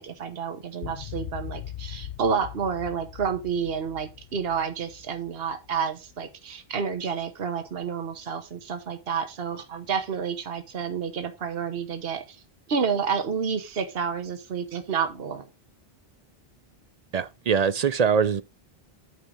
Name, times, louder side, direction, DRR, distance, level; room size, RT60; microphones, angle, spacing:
voice 1, 0.0-12.4 12.7-15.5, right 6 dB, 70° right, 1.3 m, -30 dB
sound 1, 0.8-6.2, left 10 dB, 65° left, 0.8 m, -41 dB
voice 2, 17.1-18.4, right 6 dB, 50° right, 0.5 m, -23 dB
8.3 x 5.6 x 4.9 m
omnidirectional pair, 1.0 m